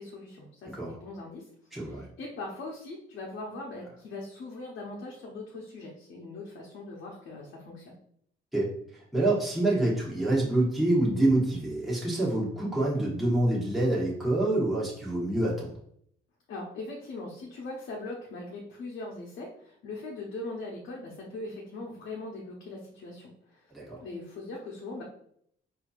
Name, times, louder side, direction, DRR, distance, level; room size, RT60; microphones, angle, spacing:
voice 1, 0.0-7.9 16.5-23.7 24.0-25.0, left 2 dB, 70° left, -2 dB, 0.9 m, -40 dB
voice 2, 1.7-2.0 8.5-15.8 23.7-24.0, right 1 dB, ahead, -7 dB, 1.3 m, -27 dB
4.3 x 2.7 x 2.4 m, 0.66 s
cardioid pair, 90°, 20 cm